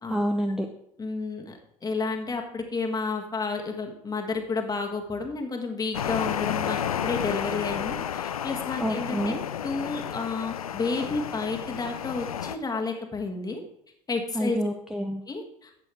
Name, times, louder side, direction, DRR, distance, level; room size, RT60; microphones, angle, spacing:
voice 1, 0.1-0.7 8.8-9.4 14.3-15.2, equal, 5° right, 4 dB, 0.8 m, -28 dB
voice 2, 1.0-9.3 9.6-13.6 14.1-14.6 15.3-15.8, left 4 dB, 20° left, 3 dB, 1.6 m, -31 dB
sound 1, 5.9-12.6, left 9 dB, 85° left, 0.4 m, -31 dB
11.5 x 8.1 x 3.6 m, 0.77 s
figure-of-eight pair, 70°, 18 cm